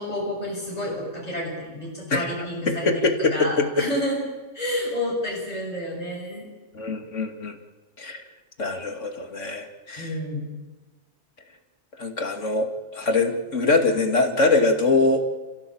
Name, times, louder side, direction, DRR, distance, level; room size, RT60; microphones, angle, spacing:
voice 1, 0.0-4.2 4.5-6.5 10.0-10.5, left 1 dB, 30° left, -3 dB, 7.5 m, -30 dB
voice 2, 2.7-3.9 6.7-7.6 8.0-8.2 8.6-10.1 12.0-15.2, left 3 dB, 85° left, 5 dB, 2.8 m, -23 dB
28.0 x 15.5 x 8.7 m, 1.2 s
omnidirectional pair, 1.2 m